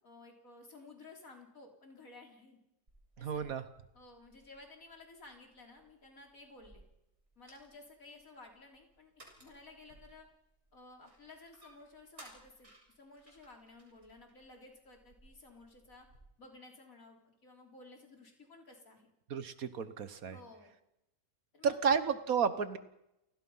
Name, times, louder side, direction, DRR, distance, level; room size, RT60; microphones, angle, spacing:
voice 1, 0.0-2.6 3.2-3.5 3.9-6.8 7.4-9.1 9.4-10.3 10.7-16.1 16.4-19.1 20.3-20.7 21.5-21.9, left 2 dB, 70° left, 2 dB, 4.1 m, -55 dB
sound 1, 2.9-16.2, right 1 dB, 55° right, 7.0 m, -62 dB
voice 2, 3.2-3.6 19.3-20.4 21.6-22.8, right 6 dB, 75° right, 12 dB, 1.7 m, -32 dB
29.0 x 18.5 x 5.7 m, 0.86 s
omnidirectional pair, 1.5 m